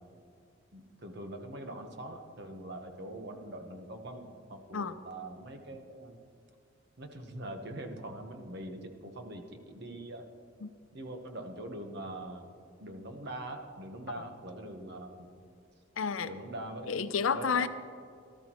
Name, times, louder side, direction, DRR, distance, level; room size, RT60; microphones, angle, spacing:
voice 1, 0.7-6.2 7.0-10.2 10.9-12.5 12.8-15.3 16.2-16.9 17.3-17.6, right 1 dB, 55° right, 5 dB, 1.1 m, -43 dB
voice 2, 16.0-16.3 16.9-17.7, left 6 dB, 85° left, 11 dB, 0.6 m, -30 dB
18.0 x 12.5 x 3.0 m, 2.3 s
head